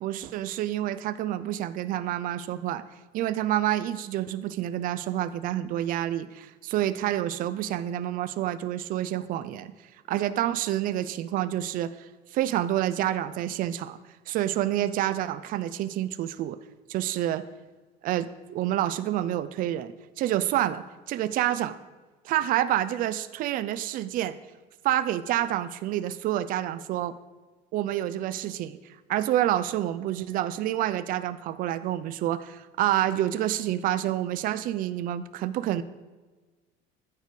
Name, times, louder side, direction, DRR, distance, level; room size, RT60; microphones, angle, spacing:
voice 1, 0.0-2.8 3.1-9.7 10.1-14.0 14.3-16.6 16.9-17.5 18.0-21.8 22.2-24.4 24.8-27.1 27.7-28.8 29.1-35.8, right 12 dB, 45° right, 13 dB, 0.5 m, -28 dB
14.5 x 6.8 x 4.8 m, 1.3 s
cardioid pair, 175°, 20 cm